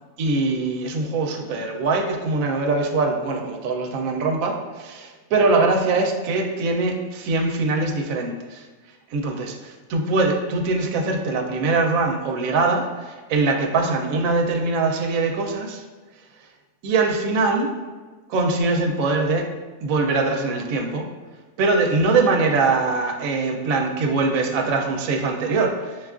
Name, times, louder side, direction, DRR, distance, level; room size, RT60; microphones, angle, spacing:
voice 1, 0.2-8.7 9.1-15.8 16.4-16.5 16.8-17.7 18.3-19.5 19.8-21.1 21.6-26.1, right 3 dB, 75° right, 2 dB, 1.0 m, -22 dB
6.3 x 2.3 x 2.4 m, 1.3 s
omnidirectional pair, 1.6 m